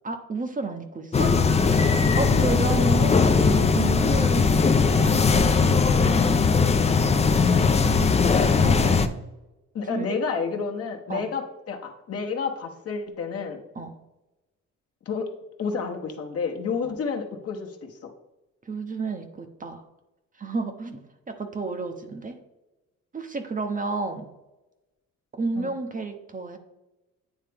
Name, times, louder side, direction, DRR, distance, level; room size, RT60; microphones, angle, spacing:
voice 1, 0.0-1.4 2.1-5.2 7.4-9.1 9.9-10.0 11.1-11.3 13.8-13.9 16.8-16.9 18.7-19.8 20.4-22.4 23.1-24.3 25.4-26.6, right 3 dB, 25° right, 6 dB, 0.7 m, -31 dB
sound 1, 1.1-9.1, left 4 dB, 20° left, 0.4 m, -19 dB
voice 2, 6.2-7.2 9.7-13.6 15.1-15.3 15.6-18.1 25.6-25.7, left 5 dB, 50° left, 2 dB, 1.0 m, -30 dB
9.1 x 3.3 x 3.4 m, 1.0 s
cardioid pair, 90°, 30 cm